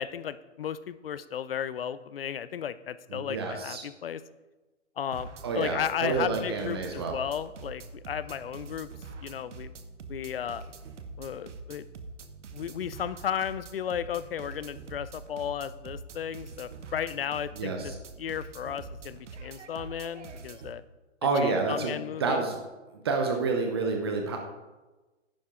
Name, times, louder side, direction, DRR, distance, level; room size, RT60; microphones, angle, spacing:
voice 1, 0.0-4.2 5.0-5.3 5.5-8.9 9.2-9.7 10.1-10.6 11.2-11.8 12.5-20.8 21.4-22.4, left 9 dB, 50° left, 15 dB, 0.6 m, -34 dB
voice 2, 3.1-3.8 5.4-7.1 17.6-18.0 21.2-22.6 23.0-24.4, right 4 dB, 20° right, 3 dB, 0.7 m, -29 dB
sound 1, 5.1-20.7, right 4 dB, 75° right, 1.2 m, -44 dB
10.5 x 9.2 x 3.7 m, 1.1 s
hypercardioid pair, 160°, 37 cm